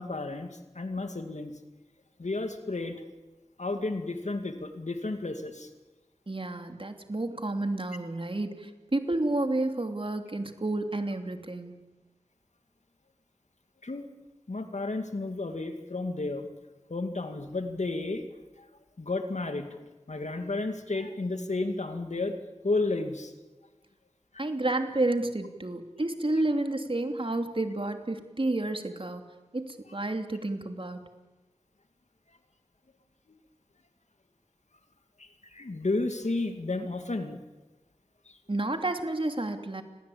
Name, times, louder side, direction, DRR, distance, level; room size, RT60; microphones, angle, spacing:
voice 1, 0.0-1.5 2.2-3.0 3.6-5.7 13.8-14.1 14.5-16.5 16.9-18.3 18.6-18.7 19.0-19.7 20.1-22.4 22.6-23.3 24.3-24.5 35.2-37.4 38.3-38.4, left 2 dB, 90° left, 7 dB, 2.4 m, -32 dB
voice 2, 6.3-11.8 24.4-29.3 29.5-31.0 38.5-39.8, right 2 dB, 50° right, 6 dB, 2.9 m, -30 dB
29.5 x 22.0 x 8.7 m, 1.2 s
wide cardioid pair, 50°, 12 cm